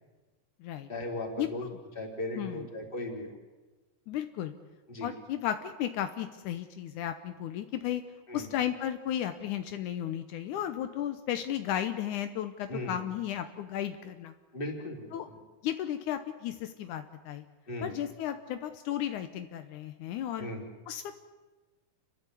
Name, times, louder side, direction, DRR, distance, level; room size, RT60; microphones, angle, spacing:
voice 1, 0.9-1.6 1.9-3.4 4.9-5.1 8.3-8.5 12.7-13.0 14.5-15.1 17.7-17.9 20.4-20.6, left 1 dB, 15° left, 0 dB, 3.1 m, -37 dB
voice 2, 2.3-2.7 4.1-4.5 5.0-8.0 8.3-14.3 15.1-15.3 15.6-17.4 17.8-20.5 20.9-21.3, left 11 dB, 90° left, 8 dB, 1.7 m, -34 dB
29.5 x 12.5 x 8.4 m, 1.2 s
omnidirectional pair, 4.7 m